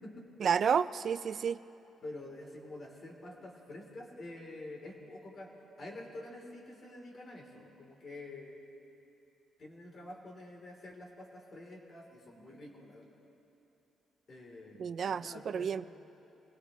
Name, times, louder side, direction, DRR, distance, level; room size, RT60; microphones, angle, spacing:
voice 1, 0.4-1.6 14.8-15.8, right 7 dB, 55° right, 14 dB, 0.3 m, -30 dB
voice 2, 2.0-5.5 5.8-8.7 9.6-13.2 14.3-15.9, left 2 dB, 45° left, -1 dB, 3.2 m, -48 dB
24.0 x 17.5 x 3.1 m, 2.9 s
cardioid pair, 90°, 0 cm